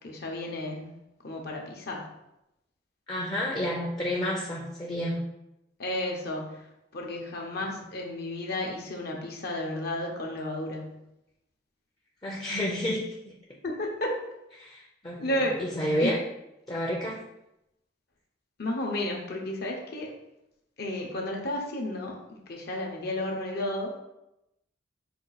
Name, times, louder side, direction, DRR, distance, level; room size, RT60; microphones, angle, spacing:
voice 1, 0.0-0.9 1.2-2.1 5.8-6.7 6.9-11.0 13.6-14.1 15.2-15.6 16.0-16.1 18.6-20.1 20.8-22.2 22.5-24.0, left 1 dB, 60° left, 0 dB, 0.8 m, -32 dB
voice 2, 3.1-5.2 12.2-13.3 14.6-16.2 16.7-17.2, equal, 20° left, -2 dB, 0.5 m, -30 dB
5.2 x 2.4 x 4.0 m, 0.88 s
head